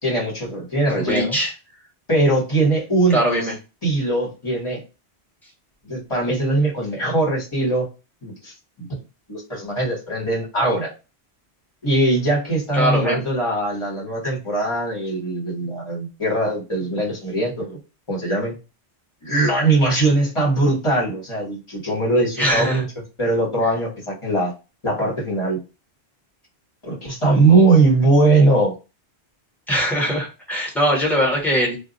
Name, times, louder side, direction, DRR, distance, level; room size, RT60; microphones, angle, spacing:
voice 1, 0.0-1.4 2.1-3.4 3.8-4.8 5.8-7.9 8.2-8.5 8.8-9.0 9.3-10.9 11.8-17.8 18.1-18.5 19.2-22.8 23.2-24.5 24.8-25.6 26.8-28.7, right 2 dB, 30° left, -2 dB, 1.2 m, -20 dB
voice 2, 1.0-1.5 3.1-3.5 12.7-13.2 22.4-22.8 29.7-31.8, equal, ahead, -2 dB, 1.1 m, -21 dB
2.3 x 2.2 x 3.9 m, 0.30 s
omnidirectional pair, 1.1 m